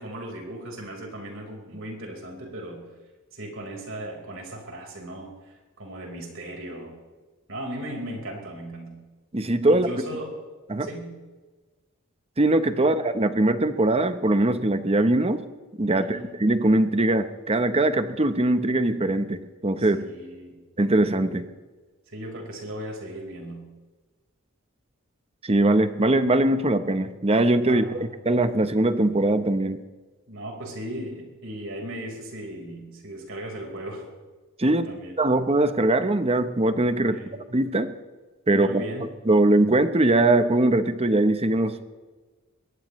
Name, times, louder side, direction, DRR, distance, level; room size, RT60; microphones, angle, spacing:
voice 1, 0.0-2.8 3.3-7.0 7.5-9.0 9.7-10.4 10.8-11.2 12.8-12.9 16.0-16.3 19.8-20.6 22.1-23.6 27.7-28.0 30.3-34.1 34.7-35.2 37.0-37.4 38.5-39.1, right 1 dB, 65° right, 1 dB, 4.6 m, -37 dB
voice 2, 9.3-9.9 10.7-10.9 12.4-15.4 15.8-20.1 20.8-21.5 25.4-29.8 34.6-34.9 35.2-37.2 37.5-37.9 38.5-38.8 39.3-41.8, right 2 dB, 30° right, 10 dB, 0.9 m, -21 dB
22.5 x 18.5 x 3.2 m, 1.3 s
head